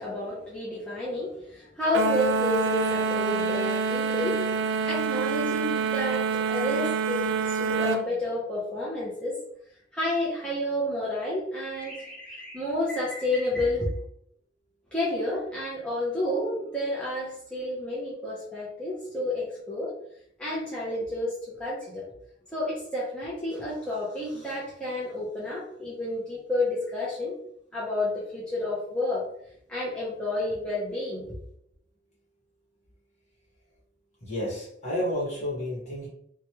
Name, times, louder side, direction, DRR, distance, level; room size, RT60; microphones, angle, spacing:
voice 1, 0.0-4.4 4.9-9.4 9.9-13.9 14.9-19.9 20.4-22.1 22.5-27.4 27.7-29.2 29.7-31.4, left 1 dB, 5° left, -8 dB, 0.6 m, -30 dB
sound 1, 1.9-8.0, right 5 dB, 70° right, 0.4 m, -26 dB
voice 2, 34.2-36.1, left 1 dB, 40° left, -5 dB, 1.3 m, -31 dB
3.0 x 2.2 x 2.8 m, 0.70 s
head